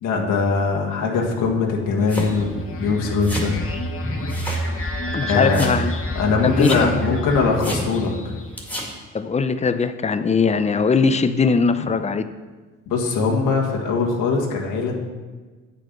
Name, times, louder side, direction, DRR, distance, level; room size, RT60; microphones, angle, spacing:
voice 1, 0.0-3.6 5.3-5.6 6.1-8.3 12.9-14.9, left 4 dB, 85° left, -1 dB, 1.7 m, -21 dB
sound 1, 2.0-8.7, equal, 45° left, 1.5 m, -29 dB
sound 2, 2.1-2.3 3.2-3.5 4.3-4.7 5.0-5.1 5.5-5.8 6.6-6.9 7.6-7.9 8.6-8.9, equal, 5° left, 2.0 m, -30 dB
voice 2, 5.1-5.9 6.4-7.2 9.1-12.3, left 4 dB, 20° left, 11 dB, 0.5 m, -20 dB
8.6 x 6.5 x 5.3 m, 1.4 s
cardioid pair, 90°, 30 cm